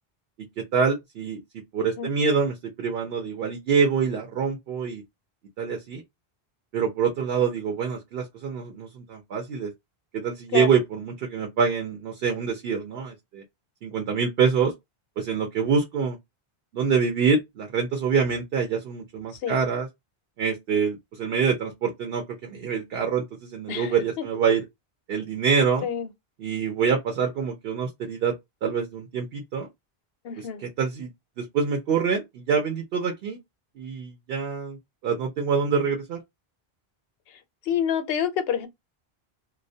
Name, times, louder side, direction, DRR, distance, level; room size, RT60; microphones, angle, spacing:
voice 1, 0.4-5.0 5.6-6.0 6.7-9.7 10.1-13.4 13.8-14.7 15.2-16.2 16.7-19.9 20.4-24.7 25.1-25.9 26.4-28.3 28.6-29.7 30.4-31.1 31.4-33.4 33.8-34.8 35.0-36.2, right 6 dB, 70° right, 0.8 m, -26 dB
voice 2, 30.2-30.6 37.7-38.7, left 8 dB, 70° left, 0.8 m, -27 dB
2.2 x 2.1 x 2.6 m
omnidirectional pair, 1.0 m